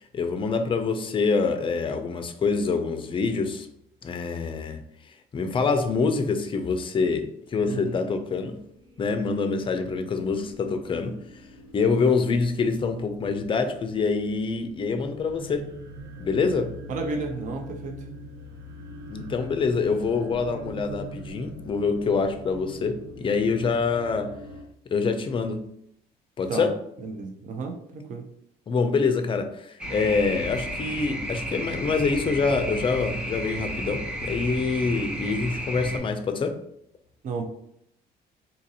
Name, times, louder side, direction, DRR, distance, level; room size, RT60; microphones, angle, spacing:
voice 1, 0.0-3.7 4.0-4.8 5.3-8.6 9.0-11.2 11.7-15.7 16.2-16.7 19.1-24.3 24.9-25.6 26.4-26.7 28.7-36.6, left 4 dB, 30° left, 8 dB, 0.4 m, -25 dB
voice 2, 7.7-8.0 16.9-18.1 26.5-26.7 27.0-28.3 37.2-37.4, right 4 dB, 50° right, 3 dB, 0.6 m, -32 dB
sound 1, 8.5-24.6, equal, 90° right, 0.6 m, -43 dB
sound 2, 29.8-36.0, right 1 dB, 5° right, 0.8 m, -33 dB
3.9 x 2.5 x 2.8 m, 0.72 s
cardioid pair, 110°, 17 cm